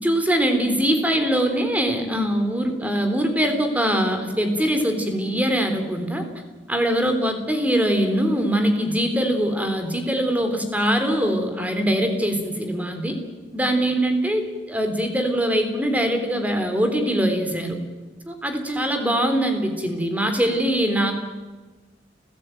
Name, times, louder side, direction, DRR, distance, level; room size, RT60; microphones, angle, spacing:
voice 1, 0.0-6.2 6.7-13.2 13.5-17.8 18.3-21.1, equal, 10° right, 6 dB, 3.4 m, -22 dB
29.5 x 16.0 x 9.2 m, 1.3 s
head